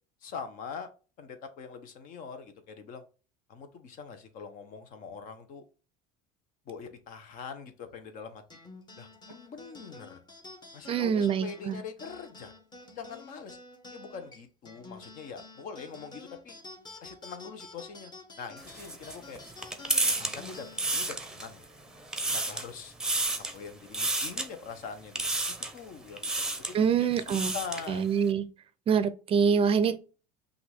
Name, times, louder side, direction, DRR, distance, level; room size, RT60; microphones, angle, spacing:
voice 1, 0.2-0.9 1.2-3.0 3.5-5.6 6.6-8.4 9.0-10.2 10.7-12.5 12.9-13.6 13.9-16.6 17.0-18.1 18.4-19.4 20.2-21.6 22.3-22.9 23.4-25.3 25.7-28.1, left 6 dB, 55° left, 1.1 m, -43 dB
sound 1, 8.5-23.2, left 3 dB, 25° left, 1.3 m, -50 dB
voice 2, 10.9-11.8 26.7-27.5 27.9-28.5 28.9-30.0, right 6 dB, 35° right, 0.5 m, -25 dB
sound 2, 18.6-21.6 22.0-22.7 23.0-23.6 23.9-24.5 25.1-25.8 26.2-26.7 27.1-27.9, right 2 dB, 5° right, 0.8 m, -31 dB
5.8 x 2.6 x 3.5 m
supercardioid pair, 120°, 17 cm